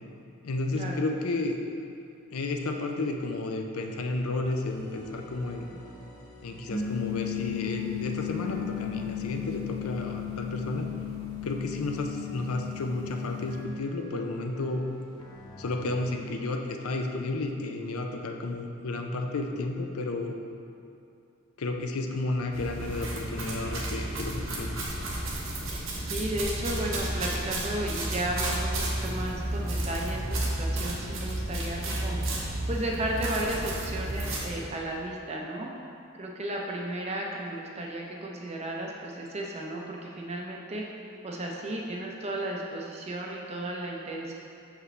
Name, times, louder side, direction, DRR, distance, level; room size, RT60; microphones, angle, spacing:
voice 1, 0.4-1.6 2.3-5.7 6.4-10.9 11.4-14.8 15.6-20.4 21.6-25.0, left 2 dB, 80° left, 3 dB, 0.5 m, -32 dB
sound 1, 4.4-16.0, left 1 dB, 20° left, 0.8 m, -48 dB
sound 2, 6.7-13.6, left 11 dB, 45° left, 0.9 m, -35 dB
sound 3, 22.5-34.5, right 1 dB, 60° right, 1.0 m, -32 dB
voice 2, 26.0-32.2 32.7-35.7 36.1-40.8 41.2-44.3, right 1 dB, 30° right, -1 dB, 0.6 m, -34 dB
6.6 x 4.9 x 3.3 m, 2.5 s
head